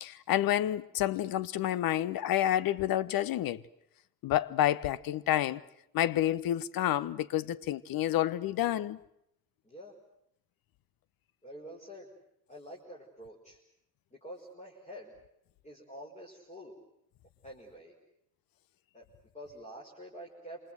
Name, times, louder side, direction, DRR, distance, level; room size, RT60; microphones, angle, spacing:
voice 1, 0.0-3.6 4.2-5.6 5.9-9.0, left 12 dB, 45° left, 1.1 m, -29 dB
voice 2, 9.6-9.9 11.4-12.1 12.5-13.6 14.1-15.1 15.6-16.8 17.4-17.9 18.9-19.0 19.3-20.6, equal, 15° left, 5.6 m, -47 dB
28.0 x 26.5 x 8.0 m
figure-of-eight pair, 60°, 48 cm